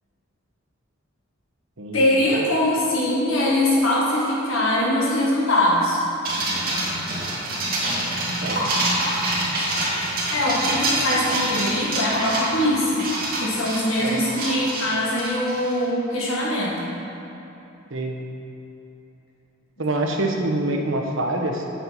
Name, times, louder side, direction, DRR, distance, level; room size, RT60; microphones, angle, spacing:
voice 1, 1.9-6.0 10.3-13.1 13.4-16.9, left 1 dB, 75° left, -6 dB, 1.8 m, -22 dB
sound 1, 6.2-15.8, right 1 dB, 45° right, 2.2 m, -26 dB
voice 2, 19.8-21.7, right 2 dB, 65° right, 0 dB, 1.2 m, -25 dB
8.8 x 5.6 x 7.4 m, 2.9 s
head